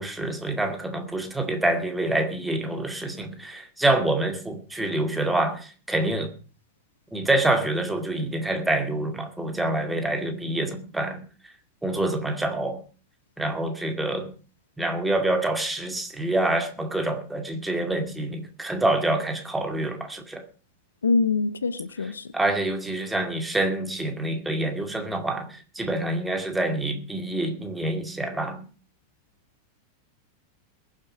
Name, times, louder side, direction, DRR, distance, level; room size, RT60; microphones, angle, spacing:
voice 1, 0.0-6.3 7.1-11.3 11.8-12.8 13.4-14.3 14.8-20.4 22.3-28.7, right 1 dB, 5° right, 2.3 m, -26 dB
voice 2, 21.0-22.3, left 4 dB, 75° left, 0.8 m, -24 dB
22.0 x 7.5 x 5.0 m
figure-of-eight pair, 90°, 0 cm